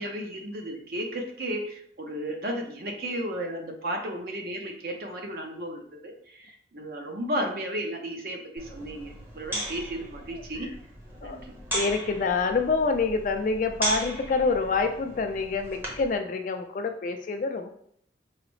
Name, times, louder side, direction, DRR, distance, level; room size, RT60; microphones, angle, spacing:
voice 1, 0.0-10.7 11.2-11.5, right 1 dB, 55° right, 2 dB, 0.6 m, -34 dB
sound 1, 8.6-16.2, right 1 dB, 10° right, 0.7 m, -36 dB
voice 2, 11.7-17.7, left 4 dB, 45° left, 6 dB, 0.3 m, -27 dB
4.7 x 2.0 x 3.0 m, 0.64 s
head